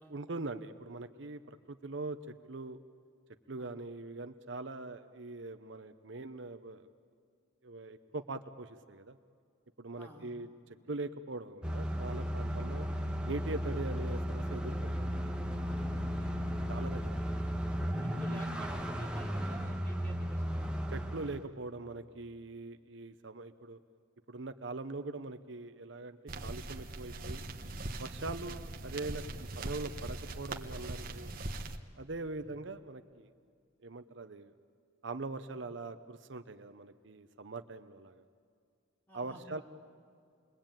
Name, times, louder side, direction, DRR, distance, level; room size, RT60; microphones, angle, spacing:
voice 1, 0.1-2.8 3.5-6.9 7.6-9.2 9.8-12.9 13.2-15.3 16.7-17.2 18.2-18.4 20.9-23.8 24.3-27.5 28.0-31.3 32.0-33.3 33.8-34.5 35.0-38.2 39.1-39.6, right 2 dB, 65° right, 9 dB, 0.8 m, -42 dB
voice 2, 10.0-10.3 16.2-16.3 18.0-20.7 32.3-32.4 35.5-35.6 39.1-39.4, right 1 dB, 10° left, -1 dB, 4.2 m, -52 dB
sound 1, 11.6-21.5, equal, 5° right, 1.4 m, -35 dB
sound 2, 26.3-31.8, right 2 dB, 45° right, 1.3 m, -41 dB
28.0 x 22.0 x 9.0 m, 2.2 s
head